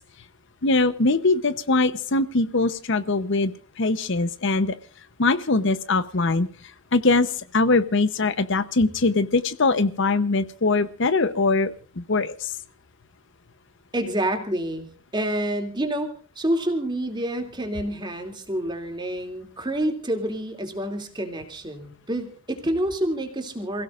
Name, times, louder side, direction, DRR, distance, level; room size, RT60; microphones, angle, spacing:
voice 1, 0.6-4.8 5.2-6.5 6.9-12.5, left 3 dB, 60° left, 13 dB, 0.8 m, -22 dB
voice 2, 13.9-23.8, right 1 dB, 20° right, 5 dB, 2.7 m, -28 dB
28.5 x 17.0 x 2.5 m, 0.39 s
head